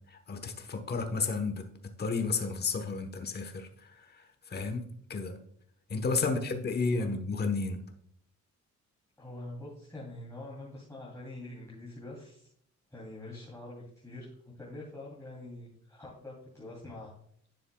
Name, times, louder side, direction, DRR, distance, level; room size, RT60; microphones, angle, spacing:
voice 1, 0.1-1.6 2.0-4.8 5.1-5.4 5.9-7.8, left 4 dB, 35° left, 6 dB, 1.1 m, -32 dB
voice 2, 9.2-12.5 12.9-17.1, left 2 dB, 10° left, -7 dB, 2.9 m, -45 dB
10.0 x 6.9 x 2.3 m, 0.66 s
cardioid pair, 90°, 30 cm